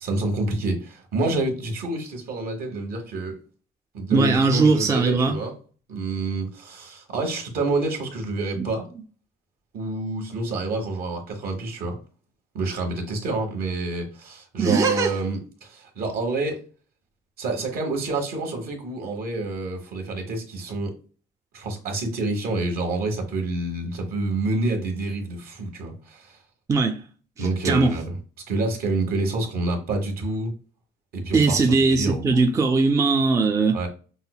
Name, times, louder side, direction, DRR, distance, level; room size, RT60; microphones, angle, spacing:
voice 1, 0.0-3.4 3.9-5.6 5.9-8.9 9.7-12.0 12.5-16.6 17.4-20.9 21.5-26.4 27.4-28.1 28.5-30.5 31.1-32.5 33.7-33.9, right 2 dB, 65° right, 1.2 m, -28 dB
voice 2, 4.1-5.4 8.6-8.7 14.6-15.1 26.7-27.0 27.4-28.0 31.3-33.8, right 4 dB, 20° right, 0.4 m, -20 dB
5.5 x 2.1 x 2.2 m
cardioid pair, 110°, 17 cm